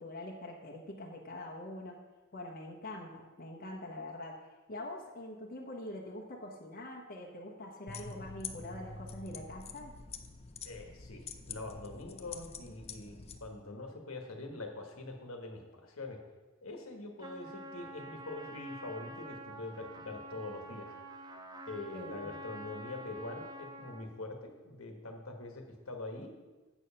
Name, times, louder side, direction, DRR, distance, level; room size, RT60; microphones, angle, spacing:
voice 1, 0.0-2.0 2.3-10.0 21.9-22.4, left 1 dB, 45° left, 0 dB, 1.0 m, -44 dB
sound 1, 7.9-13.4, left 5 dB, 30° left, 0.6 m, -46 dB
voice 2, 10.6-16.2 16.6-20.9 21.6-26.3, left 2 dB, 75° left, 3 dB, 1.4 m, -44 dB
Trumpet, 17.2-24.1, right 1 dB, 20° right, 0.7 m, -47 dB
8.1 x 6.9 x 5.6 m, 1.2 s
head